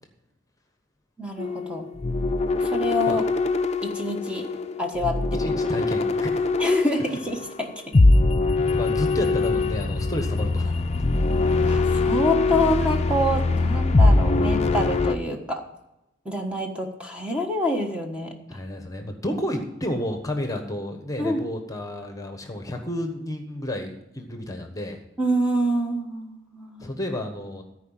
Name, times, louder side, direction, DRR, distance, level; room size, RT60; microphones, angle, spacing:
voice 1, 1.2-1.9 2.6-3.2 3.8-4.5 4.8-5.5 6.6-7.7 11.6-15.6 16.2-18.3 21.2-21.4 25.2-26.8, equal, 5° right, 2 dB, 1.3 m, -26 dB
sound 1, 1.4-15.2, left 3 dB, 35° left, 0.6 m, -22 dB
voice 2, 5.4-6.5 8.7-10.8 18.5-25.0 26.8-27.6, left 1 dB, 20° left, 5 dB, 1.2 m, -31 dB
14.0 x 4.9 x 8.9 m, 0.91 s
head